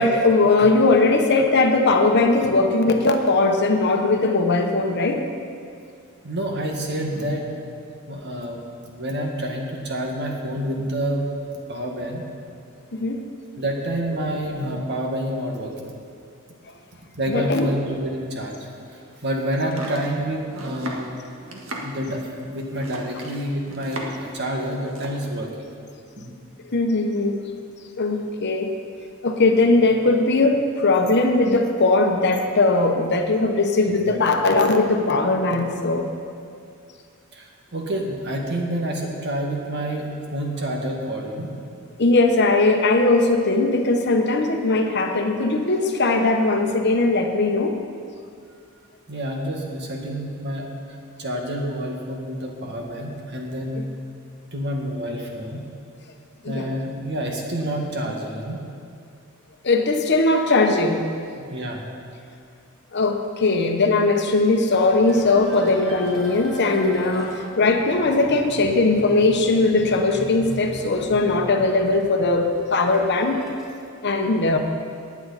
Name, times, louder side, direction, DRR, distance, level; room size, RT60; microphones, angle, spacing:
voice 1, 0.0-5.2 12.9-13.3 17.3-17.7 26.7-27.4 28.0-28.8 29.2-36.1 42.0-47.8 53.8-53.9 56.4-56.7 59.6-61.0 62.9-73.4 74.0-74.6, left 2 dB, 55° left, 4 dB, 1.0 m, -19 dB
voice 2, 6.2-7.5 8.1-8.6 8.9-11.3 11.7-12.2 13.6-15.7 17.1-21.1 21.8-25.7 26.2-26.3 33.9-34.1 37.3-41.6 49.1-50.7 51.2-54.0 54.5-55.6 56.5-58.6 61.4-61.8, equal, 55° right, 0 dB, 1.8 m, -28 dB
Domestic sounds home sounds, 19.5-24.3 24.6-25.2, right 1 dB, 90° right, 1.7 m, -36 dB
sound 1, 65.0-71.3 71.6-73.8, equal, ahead, 3.2 m, -41 dB
19.0 x 9.3 x 4.2 m, 2.3 s
head